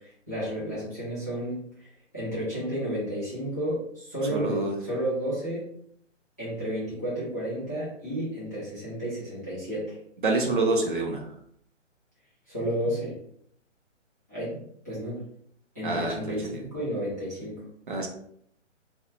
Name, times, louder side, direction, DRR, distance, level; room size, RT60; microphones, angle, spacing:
voice 1, 0.0-1.9 2.1-5.7 6.4-10.0 12.5-13.2 14.3-14.6 14.8-15.2 15.7-17.6, equal, 15° left, -12 dB, 0.4 m, -32 dB
voice 2, 4.3-4.8 10.2-11.3 15.8-16.2 16.5-16.6 17.9-18.1, right 2 dB, 45° right, 2 dB, 0.4 m, -26 dB
2.4 x 2.0 x 2.6 m, 0.67 s
hypercardioid pair, 145°, 38 cm